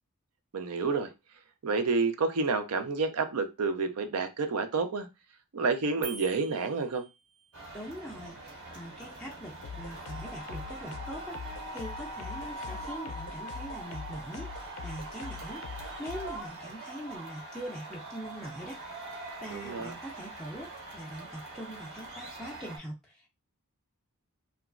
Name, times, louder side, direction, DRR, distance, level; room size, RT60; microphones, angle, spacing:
voice 1, 0.5-1.1 1.6-5.1 5.5-7.0 19.5-19.9, right 4 dB, 85° right, 0.5 m, -29 dB
sound 1, 6.0-7.6, right 4 dB, 30° right, 0.7 m, -46 dB
sound 2, 7.5-22.8, right 2 dB, 60° right, 1.3 m, -43 dB
voice 2, 7.7-11.4 11.7-18.8 19.4-23.3, equal, ahead, 0.4 m, -42 dB
sound 3, 9.6-16.4, left 5 dB, 85° left, 0.4 m, -43 dB
2.9 x 2.3 x 2.4 m
head